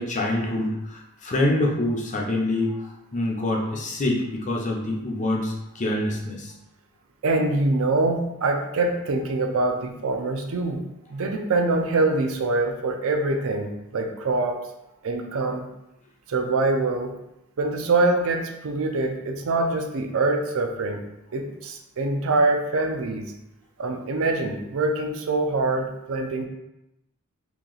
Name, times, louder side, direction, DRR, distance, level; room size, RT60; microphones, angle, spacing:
voice 1, 0.0-6.5, left 1 dB, 35° left, -1 dB, 0.6 m, -26 dB
voice 2, 7.2-10.8 11.1-14.6 15.0-15.7 16.3-17.1 17.6-21.0 21.3-23.3 23.8-26.5, right 2 dB, 65° right, 3 dB, 0.5 m, -24 dB
2.9 x 2.8 x 3.9 m, 0.89 s
head